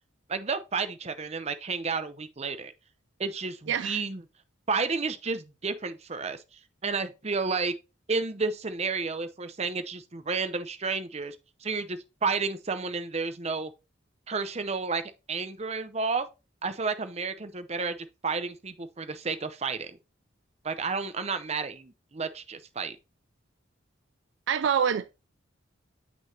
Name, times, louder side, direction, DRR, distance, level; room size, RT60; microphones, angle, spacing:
voice 1, 0.3-2.7 3.2-4.2 4.7-6.4 6.8-7.7 8.1-11.4 11.6-13.7 14.3-15.0 15.3-16.3 16.6-18.0 18.2-20.0 20.6-23.0, right 4 dB, 35° right, 0.7 m, -31 dB
voice 2, 3.7-4.0 24.5-25.1, right 8 dB, 65° right, 0.3 m, -26 dB
7.8 x 6.1 x 2.8 m
head